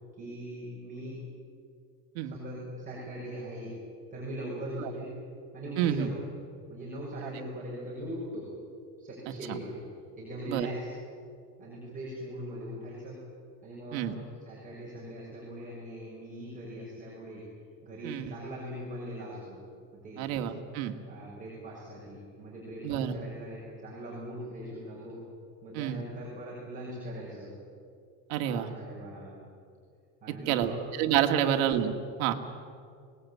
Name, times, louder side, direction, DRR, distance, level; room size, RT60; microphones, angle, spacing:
voice 1, 0.1-1.2 2.2-3.7 4.1-5.1 5.5-6.2 6.7-8.5 9.0-9.9 10.2-10.9 11.6-13.2 13.6-17.4 17.8-19.6 19.9-20.3 21.1-25.2 25.6-27.5 28.4-29.4 30.2-30.8 31.4-31.6, right 1 dB, 20° right, -6 dB, 6.2 m, -40 dB
voice 2, 5.8-6.1 10.5-10.7 13.9-14.1 18.0-18.3 20.2-20.9 22.8-23.2 25.7-26.0 28.3-28.7 30.5-31.9 32.2-32.3, right 11 dB, 80° right, 5 dB, 2.0 m, -28 dB
25.0 x 19.0 x 8.5 m, 2.3 s
cardioid pair, 155°, 41 cm